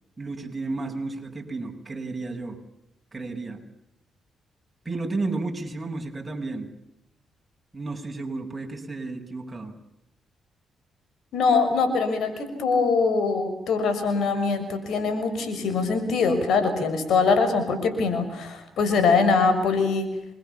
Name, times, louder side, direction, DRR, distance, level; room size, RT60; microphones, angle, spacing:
voice 1, 0.2-2.6 3.1-3.6 4.9-6.7 7.7-9.7, right 3 dB, 20° right, 2 dB, 7.2 m, -32 dB
voice 2, 11.3-20.1, left 4 dB, 75° left, 9 dB, 6.4 m, -23 dB
30.0 x 24.0 x 7.2 m, 0.82 s
cardioid pair, 70°, 0 cm